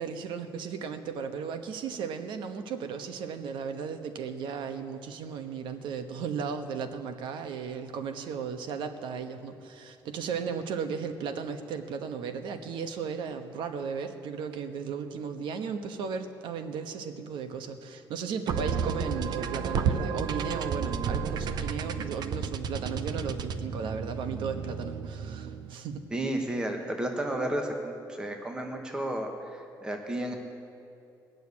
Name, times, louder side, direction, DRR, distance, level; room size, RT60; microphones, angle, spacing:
voice 1, 0.0-26.0, right 6 dB, 85° right, 8 dB, 1.2 m, -35 dB
sound 1, 18.5-25.8, right 6 dB, 60° right, 0.7 m, -32 dB
voice 2, 26.1-29.3 29.8-30.3, right 1 dB, 10° right, 3 dB, 1.2 m, -32 dB
19.5 x 6.8 x 9.6 m, 2.7 s
cardioid pair, 150°, 8 cm